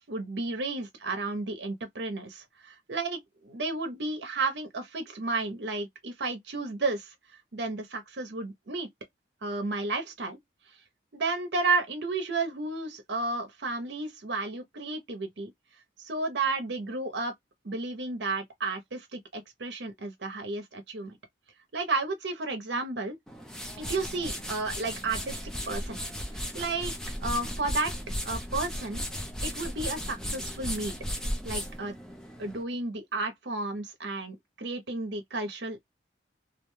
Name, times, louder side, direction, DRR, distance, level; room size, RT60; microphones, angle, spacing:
voice 1, 0.1-7.1 7.5-8.9 9.4-10.4 11.1-15.5 16.0-17.3 17.6-21.2 21.7-23.2 23.8-26.0 26.3-27.9 28.2-29.1 29.4-30.9 31.4-32.0 32.4-35.8, right 3 dB, 60° right, 0.7 m, -32 dB
sound 1, 23.3-32.6, equal, 5° left, 0.5 m, -36 dB
2.5 x 2.2 x 3.0 m
head